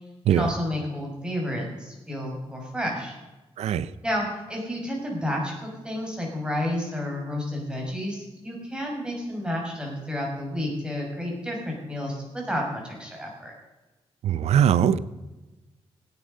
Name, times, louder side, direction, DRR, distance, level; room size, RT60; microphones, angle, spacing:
voice 1, 0.3-3.2 4.0-13.5, left 1 dB, 10° right, -1 dB, 6.6 m, -31 dB
voice 2, 14.2-15.0, right 9 dB, 90° right, 17 dB, 0.6 m, -20 dB
17.0 x 9.9 x 5.5 m, 1.1 s
cardioid pair, 85°, 11 cm